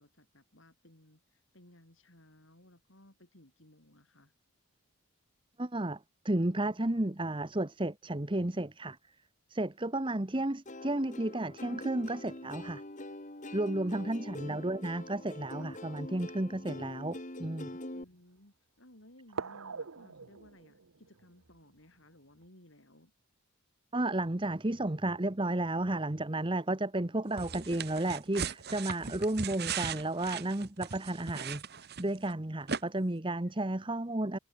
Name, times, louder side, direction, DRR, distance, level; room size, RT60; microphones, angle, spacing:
voice 1, 0.0-4.3 17.9-23.1 33.4-33.6, left 1 dB, 60° left, 4.8 m, -59 dB
voice 2, 5.6-9.0 9.5-12.8 13.5-17.8 23.9-31.6 32.0-34.4, right 1 dB, 25° right, 1.0 m, -32 dB
Plucked string instrument, 10.7-18.0, left 1 dB, 35° left, 2.0 m, -44 dB
sound 1, 15.4-16.7 17.5-17.6 19.3-22.5, right 4 dB, 75° right, 0.9 m, -46 dB
sound 2, 27.4-32.3 32.7-32.8, right 6 dB, 45° right, 1.3 m, -38 dB
head